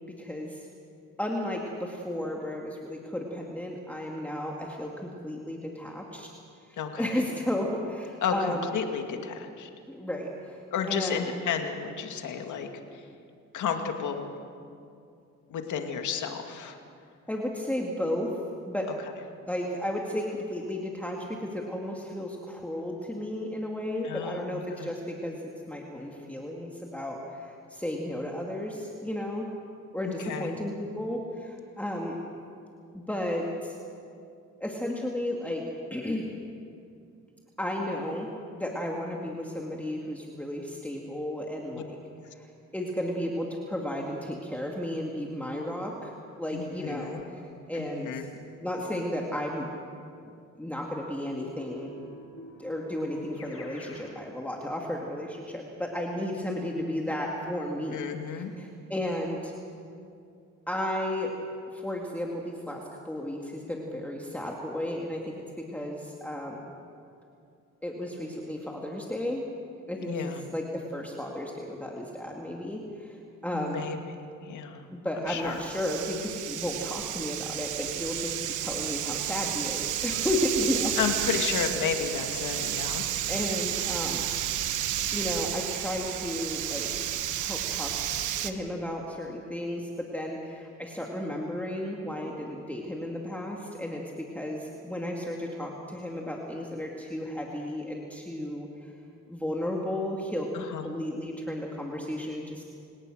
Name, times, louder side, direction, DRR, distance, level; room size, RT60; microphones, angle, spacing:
voice 1, 0.1-0.7 1.2-6.3 6.7-8.7 9.9-10.6 10.9-11.3 17.3-18.3 18.7-18.9 19.5-25.4 25.7-29.5 29.9-32.2 32.9-33.8 34.6-35.6 35.9-36.3 37.6-42.0 42.3-47.4 47.7-48.3 48.6-49.7 50.6-51.9 52.6-59.5 60.7-61.3 61.7-66.6 67.8-69.4 69.9-73.9 74.9-81.3 83.3-84.4 85.1-87.1 87.4-98.9 99.3-102.6, left 1 dB, 5° left, -1 dB, 2.5 m, -33 dB
voice 2, 6.8-7.2 8.2-9.7 10.7-13.1 13.5-14.3 15.5-16.8 24.0-24.9 30.0-30.5 41.7-41.8 46.5-47.2 47.7-48.3 57.9-58.5 70.1-70.4 73.5-74.0 74.4-74.9 75.2-75.6 81.0-83.1 100.5-100.9, left 7 dB, 75° left, 4 dB, 2.3 m, -32 dB
Keyboard (musical), 51.4-54.1, left 1 dB, 45° left, 7.7 m, -46 dB
sound 1, 75.3-88.5, right 11 dB, 80° right, 1.3 m, -31 dB
29.5 x 18.0 x 6.5 m, 2.4 s
cardioid pair, 90°, 30 cm